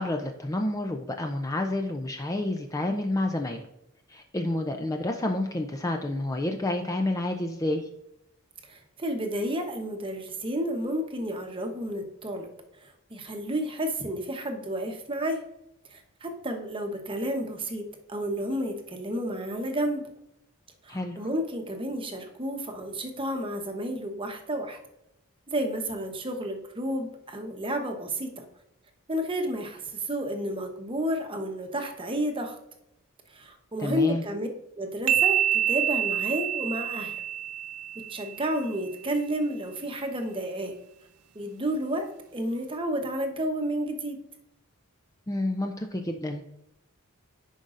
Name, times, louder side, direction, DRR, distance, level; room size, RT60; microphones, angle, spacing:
voice 1, 0.0-3.6 4.1-7.9 20.9-21.2 33.8-34.2 45.3-46.6, left 1 dB, 15° left, 4 dB, 0.4 m, -29 dB
voice 2, 8.6-12.5 12.8-15.4 15.9-20.1 20.8-24.8 25.5-28.4 29.1-32.6 33.3-34.5 34.8-37.2 37.9-40.8 41.3-44.2, equal, 25° right, 4 dB, 0.9 m, -31 dB
sound 1, 35.1-38.6, right 10 dB, 80° right, 0.4 m, -27 dB
10.0 x 5.3 x 2.5 m, 0.84 s
head